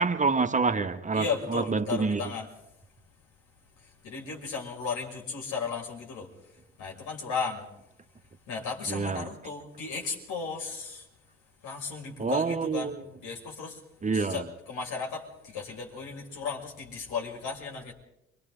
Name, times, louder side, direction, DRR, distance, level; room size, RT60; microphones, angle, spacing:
voice 1, 0.0-2.2 8.9-9.3 12.2-13.0 14.0-14.4, right 4 dB, 20° right, 1.4 m, -27 dB
voice 2, 1.1-2.5 4.0-6.3 6.8-7.7 8.5-11.1 11.6-12.9 13.2-13.8 14.1-17.9, left 5 dB, 65° left, 6.2 m, -35 dB
29.5 x 24.0 x 4.0 m
hypercardioid pair, 55°, 33 cm